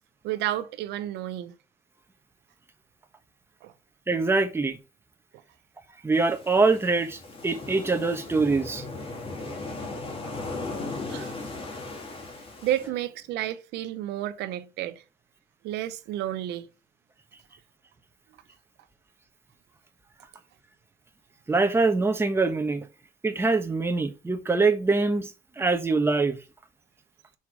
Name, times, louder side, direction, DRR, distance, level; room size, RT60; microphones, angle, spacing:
voice 1, 0.2-1.5 3.6-3.7 11.1-11.4 12.6-15.0 15.6-16.7, right 13 dB, 85° right, 0.9 m, -31 dB
voice 2, 4.1-4.8 6.0-8.8 21.5-22.9 23.2-26.4, right 3 dB, 15° right, 1.1 m, -24 dB
sound 1, 6.1-12.9, left 3 dB, 35° left, 2.3 m, -37 dB
5.8 x 4.7 x 4.7 m
cardioid pair, 110°, 17 cm